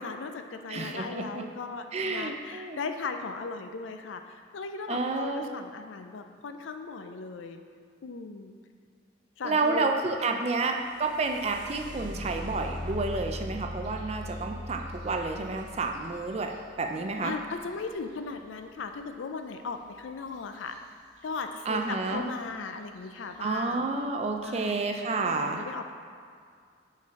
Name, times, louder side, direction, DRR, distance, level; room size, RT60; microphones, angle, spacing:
voice 1, 0.0-7.6 8.0-8.6 9.4-10.5 17.2-20.8 21.2-23.9 24.4-24.8 25.1-25.9, left 4 dB, 90° left, 7 dB, 0.4 m, -37 dB
voice 2, 0.7-1.4 1.9-2.8 4.9-5.5 9.4-16.5 16.8-17.4 21.7-22.3 23.4-25.6, right 3 dB, 35° right, 4 dB, 0.4 m, -30 dB
sound 1, 10.7-18.5 20.6-20.7 21.2-21.7 22.3-22.4 22.9-23.3, left 1 dB, 85° right, 1.0 m, -40 dB
5.2 x 3.9 x 5.2 m, 2.2 s
head